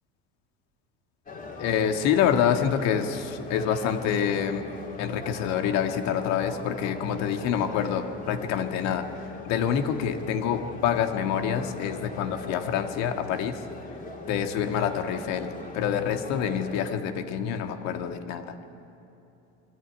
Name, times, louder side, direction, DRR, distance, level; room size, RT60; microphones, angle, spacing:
sound 1, 1.3-16.7, left 3 dB, 30° left, 3.5 m, -41 dB
voice 1, 1.6-4.7 5.0-9.1 9.4-13.6 14.3-18.5, left 8 dB, 65° left, 6 dB, 1.8 m, -27 dB
22.5 x 13.5 x 9.3 m, 2.9 s
supercardioid pair, 120°, 30 cm